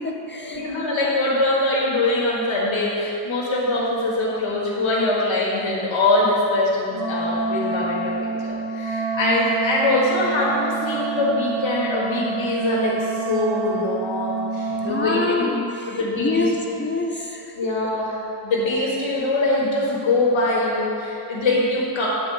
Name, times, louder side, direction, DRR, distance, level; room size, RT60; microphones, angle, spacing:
voice 1, 0.0-0.7 14.8-17.6, left 3 dB, 25° left, 2 dB, 0.3 m, -26 dB
voice 2, 0.5-15.6 15.9-16.8 17.6-18.1 18.4-22.1, left 2 dB, 80° left, -5 dB, 1.5 m, -23 dB
Wind instrument woodwind instrument, 6.9-15.3, right 4 dB, 35° right, 0.8 m, -27 dB
8.6 x 3.9 x 6.3 m, 2.8 s
wide cardioid pair, 175°, 46 cm